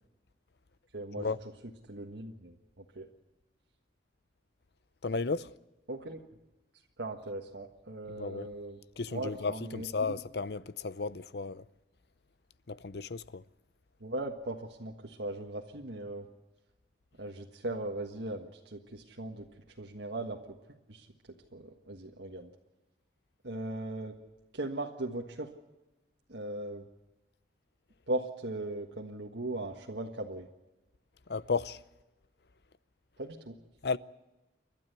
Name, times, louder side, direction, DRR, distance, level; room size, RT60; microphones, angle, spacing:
voice 1, 0.9-1.3 1.9-3.1 5.9-6.2 7.0-8.8 9.1-9.9 14.0-16.3 17.2-19.5 19.8-20.6 20.9-21.1 21.5-22.5 23.4-24.2 24.5-25.5 26.3-26.9 28.1-30.5 33.2-33.6, right 2 dB, 75° right, 1.6 m, -38 dB
voice 2, 5.0-5.5 8.1-8.5 9.0-11.6 12.7-13.4 31.3-31.8 33.8-34.0, left 4 dB, 60° left, 0.6 m, -34 dB
29.5 x 12.5 x 8.2 m
head